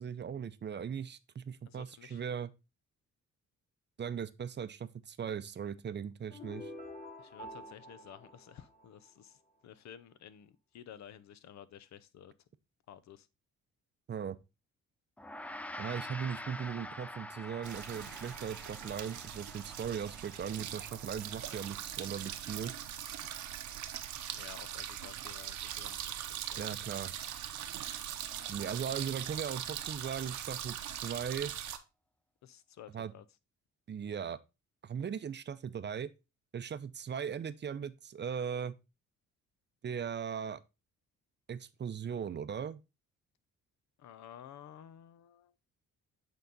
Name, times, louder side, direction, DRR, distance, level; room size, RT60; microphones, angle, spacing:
voice 1, 0.0-2.5 4.0-6.7 14.1-14.4 15.8-22.7 26.6-27.1 28.5-31.5 32.9-33.1 33.9-34.4 34.8-36.1 36.5-38.7 39.8-40.6 41.5-42.8, right 7 dB, 35° right, 0.6 m, -38 dB
voice 2, 1.7-2.2 7.2-12.3 12.9-13.3 24.3-26.7 32.4-33.2 44.0-45.5, left 9 dB, 65° left, 0.7 m, -53 dB
sound 1, 6.3-9.4, left 1 dB, 30° left, 2.2 m, -48 dB
Gong, 15.2-24.7, left 1 dB, 5° left, 0.4 m, -48 dB
sound 2, 17.6-31.8, right 10 dB, 75° right, 0.9 m, -41 dB
8.3 x 3.9 x 3.9 m
cardioid pair, 90°, 30 cm